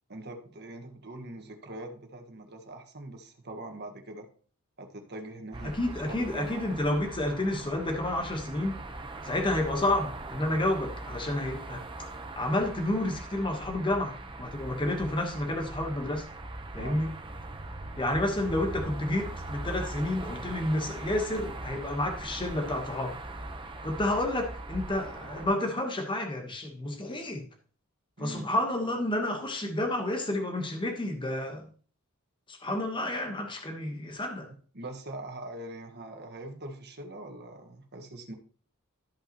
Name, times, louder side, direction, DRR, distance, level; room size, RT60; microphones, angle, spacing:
voice 1, 0.1-4.3 4.8-6.7 16.8-17.0 28.2-28.5 34.7-38.3, right 1 dB, 50° right, 4 dB, 1.5 m, -42 dB
sound 1, 5.5-25.5, right 2 dB, 25° right, 0.8 m, -40 dB
voice 2, 5.6-8.8 9.2-12.1 12.3-16.2 16.7-17.1 18.0-23.2 23.8-27.4 28.2-31.7 32.5-34.5, left 1 dB, 25° left, 3 dB, 1.1 m, -30 dB
13.5 x 5.6 x 3.0 m, 0.43 s
head